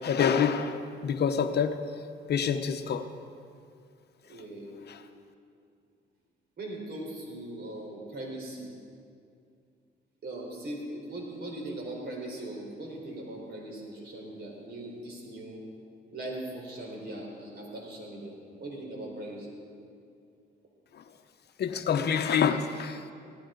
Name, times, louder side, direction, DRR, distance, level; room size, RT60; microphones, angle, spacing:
voice 1, 0.0-1.8 2.3-3.1 4.9-5.0 21.6-23.1, left 7 dB, 55° left, 8 dB, 0.8 m, -27 dB
voice 2, 4.3-4.8 6.6-8.7 10.2-15.6 16.1-19.6, right 1 dB, 55° right, -1 dB, 4.3 m, -40 dB
17.0 x 16.5 x 3.9 m, 2.4 s
cardioid pair, 90°, 20 cm